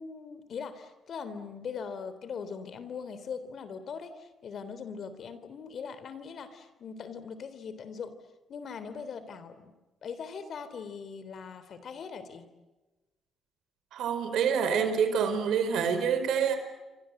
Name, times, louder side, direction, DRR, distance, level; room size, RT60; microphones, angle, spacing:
voice 1, 0.0-8.1 8.5-9.7 10.0-12.5, left 6 dB, 60° left, 3.4 m, -40 dB
voice 2, 13.9-16.6, right 7 dB, 80° right, 4.7 m, -27 dB
29.0 x 24.5 x 7.9 m
cardioid pair, 90°, 0 cm